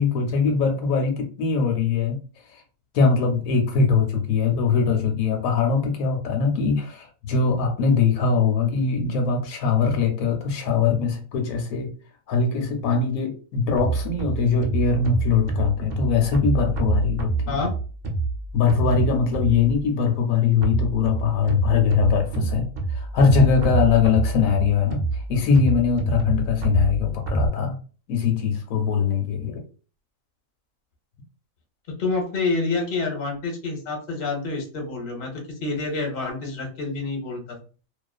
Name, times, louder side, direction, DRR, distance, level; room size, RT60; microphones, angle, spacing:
voice 1, 0.0-2.2 2.5-2.6 2.9-11.9 12.3-17.6 18.5-27.8 28.1-29.6, left 5 dB, 90° left, 3 dB, 1.1 m, -22 dB
sound 1, 13.8-19.8 20.6-27.5, right 3 dB, 60° right, 0.5 m, -27 dB
voice 2, 32.0-35.3 35.6-37.6, left 3 dB, 50° left, 1 dB, 0.9 m, -27 dB
2.4 x 2.4 x 2.3 m, 0.37 s
omnidirectional pair, 1.4 m